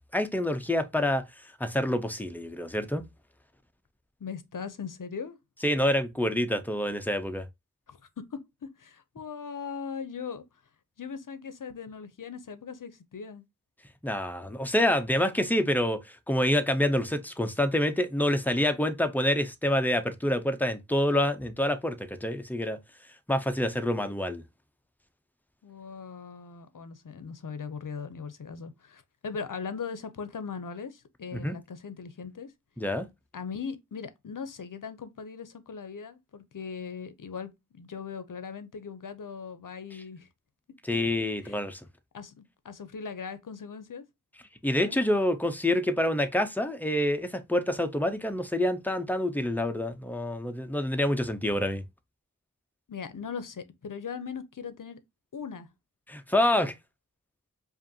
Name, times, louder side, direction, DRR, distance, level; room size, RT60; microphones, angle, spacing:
voice 1, 0.1-1.2 1.6-3.0 5.6-7.5 14.0-22.8 23.3-24.4 31.3-31.5 32.8-33.1 40.8-41.8 44.6-51.8 56.1-56.7, left 1 dB, 5° left, 0.6 m, -27 dB
voice 2, 4.2-5.4 7.9-8.0 8.3-10.4 11.0-13.4 25.6-32.5 33.3-40.3 41.4-41.6 42.1-44.0 44.7-45.0 52.9-55.0 55.3-55.7, left 6 dB, 70° left, 0.6 m, -39 dB
4.9 x 2.6 x 2.7 m
wide cardioid pair, 50°, 33 cm